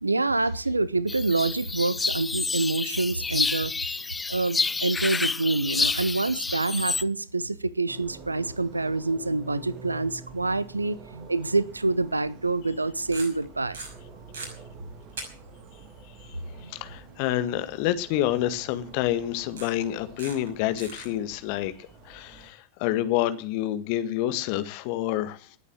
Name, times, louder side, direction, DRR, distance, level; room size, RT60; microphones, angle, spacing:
voice 1, 0.0-3.7 4.3-13.8 16.6-16.7, right 3 dB, 80° right, 0.8 m, -26 dB
sound 1, 1.1-7.0, left 4 dB, 10° left, 0.7 m, -29 dB
sound 2, 7.9-22.5, right 5 dB, 35° right, 2.6 m, -48 dB
sound 3, 13.1-13.4 13.7-14.5 15.2-15.3 15.6-15.7 18.6-18.7 19.6-19.8 20.2-20.5 20.8-21.1, right 4 dB, 60° right, 5.7 m, -38 dB
voice 2, 16.7-21.7 22.0-25.6, left 13 dB, 45° left, 1.6 m, -28 dB
19.0 x 8.3 x 7.5 m
figure-of-eight pair, 90°, 0 cm